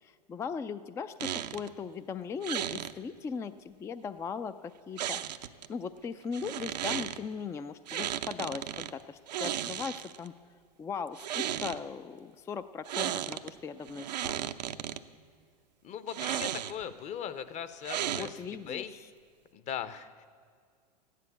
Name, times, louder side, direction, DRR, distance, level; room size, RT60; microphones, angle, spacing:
voice 1, 0.0-10.3 10.8-14.4 18.1-18.8, left 6 dB, 15° left, 12 dB, 0.4 m, -39 dB
sound 1, 1.2-1.7 2.4-2.9 5.0-5.7 6.3-7.2 7.9-8.9 9.3-10.3 11.1-11.8 12.9-13.5 13.9-15.0 16.1-16.9 17.8-18.6, right 11 dB, 80° right, 0.6 m, -34 dB
voice 2, 15.8-18.9 19.5-20.2, left 9 dB, 35° left, 13 dB, 0.9 m, -39 dB
14.0 x 9.9 x 8.1 m, 2.1 s
hypercardioid pair, 110°, 21 cm